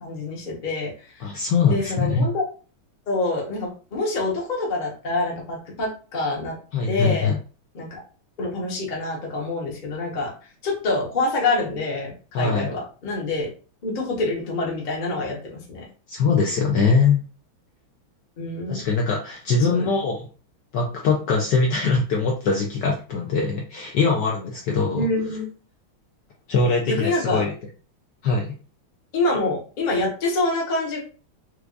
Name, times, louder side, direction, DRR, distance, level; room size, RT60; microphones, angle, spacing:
voice 1, 0.0-1.3 1.7-2.4 3.1-6.5 6.9-7.3 7.7-8.0 8.4-10.3 10.6-13.5 13.8-15.8 18.4-18.9 19.6-19.9 24.9-25.5 26.8-27.4 29.1-31.0, left 2 dB, 40° left, -2 dB, 0.6 m, -26 dB
voice 2, 1.2-2.3 6.7-7.4 12.3-12.7 16.1-17.2 18.7-20.2 20.7-25.0 26.5-27.5 28.2-28.5, left 4 dB, 75° left, -1 dB, 1.0 m, -22 dB
4.6 x 2.4 x 2.4 m, 0.37 s
omnidirectional pair, 2.3 m